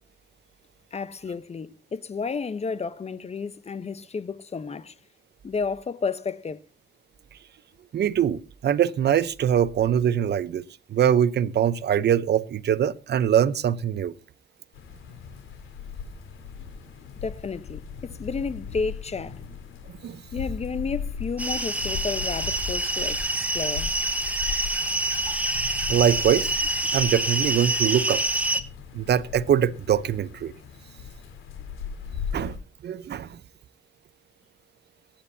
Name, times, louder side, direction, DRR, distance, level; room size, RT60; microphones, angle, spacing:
voice 1, 0.9-4.9 5.4-6.6 17.2-19.4 20.3-23.2 23.5-23.9, left 5 dB, 30° left, 0.9 m, -31 dB
voice 2, 7.9-10.6 10.9-14.1 20.0-20.2 25.9-26.6 26.9-28.2 28.9-30.5 32.3-32.6 32.8-33.4, right 9 dB, 55° right, 0.8 m, -23 dB
sound 1, 14.7-32.6, left 7 dB, 90° left, 3.7 m, -38 dB
sound 2, 21.4-28.6, right 1 dB, 5° right, 1.3 m, -26 dB
23.0 x 10.5 x 2.8 m
cardioid pair, 90°, 20 cm